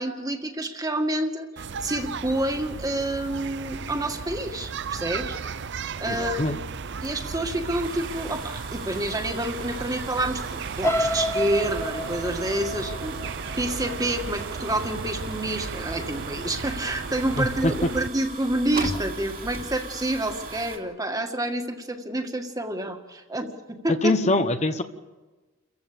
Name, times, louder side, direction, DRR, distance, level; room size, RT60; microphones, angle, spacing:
voice 1, 0.0-1.5 1.8-5.4 6.0-6.6 7.0-24.3, right 1 dB, 20° right, 5 dB, 2.0 m, -28 dB
sound 1, 1.6-18.1, right 5 dB, 60° right, 0.7 m, -35 dB
voice 2, 6.1-6.6 17.4-17.7 24.0-24.8, left 2 dB, 35° left, 8 dB, 1.0 m, -23 dB
sound 2, 7.8-20.8, right 3 dB, 45° right, 2.7 m, -39 dB
sound 3, 10.8-14.8 15.3-15.6 15.9-16.0, left 1 dB, 15° left, 1.4 m, -30 dB
29.5 x 15.0 x 7.0 m, 1.2 s
head